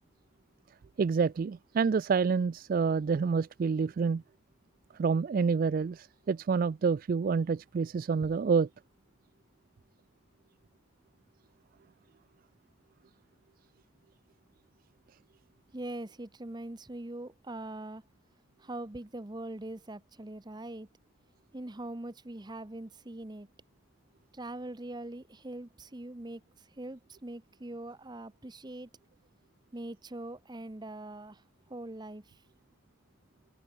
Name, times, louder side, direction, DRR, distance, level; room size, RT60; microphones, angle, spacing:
voice 1, 1.0-4.2 5.0-8.7, right 5 dB, 45° right, 0.3 m, -28 dB
voice 2, 15.7-18.0 18.6-20.9 21.5-23.5 24.3-28.9 29.7-31.4 31.7-32.4, right 1 dB, 20° right, 0.8 m, -42 dB
head